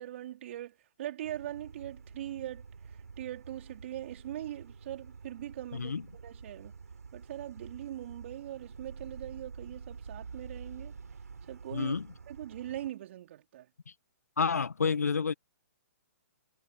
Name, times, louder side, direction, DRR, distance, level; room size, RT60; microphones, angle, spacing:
voice 1, 0.0-2.6 3.2-6.7 7.1-11.0 11.5-12.0 12.3-13.7, right 12 dB, 50° right, 4.2 m, -41 dB
sound 1, 1.2-12.9, right 5 dB, 80° right, 5.0 m, -48 dB
voice 2, 5.7-6.0 11.7-12.1 14.4-15.3, left 5 dB, 80° left, 1.2 m, -29 dB
hypercardioid pair, 130°, 8 cm